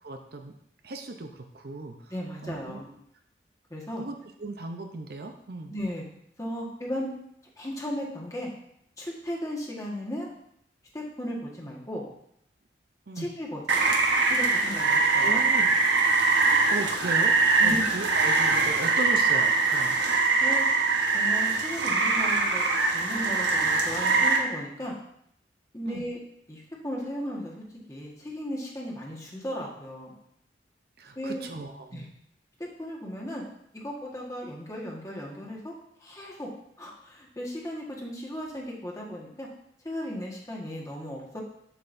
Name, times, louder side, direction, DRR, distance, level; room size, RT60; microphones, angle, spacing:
voice 1, 0.0-0.5 0.8-2.0 2.4-2.8 4.0-5.8 13.1-13.3 15.2-15.7 16.7-20.0 25.9-26.0 31.0-32.0, right 2 dB, 55° right, 5 dB, 0.6 m, -37 dB
voice 2, 2.1-2.9 3.7-4.0 5.7-6.0 6.4-7.1 7.6-8.5 9.0-10.3 10.9-12.0 13.1-13.8 14.3-15.4 17.6-17.8 20.4-20.6 21.1-22.6 22.9-24.9 25.7-26.2 26.5-27.6 27.9-30.1 31.1-31.4 31.9-32.1 32.8-33.5 33.7-35.7 36.0-36.5 36.8-39.5 39.8-41.4, equal, 20° left, -2 dB, 1.5 m, -35 dB
Rain, 13.7-24.4, right 4 dB, 80° right, 1.2 m, -23 dB
7.8 x 7.7 x 2.6 m, 0.73 s
head